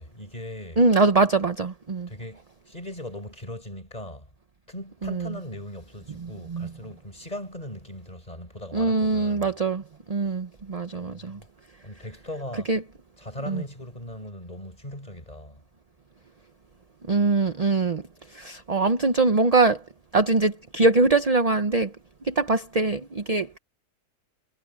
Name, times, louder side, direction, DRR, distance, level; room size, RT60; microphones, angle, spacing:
voice 1, 0.0-0.8 2.1-4.3 4.7-9.5 11.2-11.5 11.8-12.7 13.2-15.6, left 1 dB, 25° left, 6.5 m, -39 dB
voice 2, 0.8-2.1 5.0-5.4 6.1-6.7 8.7-11.4 12.7-12.8 13.5-13.6 17.1-19.8 20.1-22.0 22.2-23.6, right 3 dB, 30° right, 0.8 m, -23 dB
omnidirectional pair, 1.6 m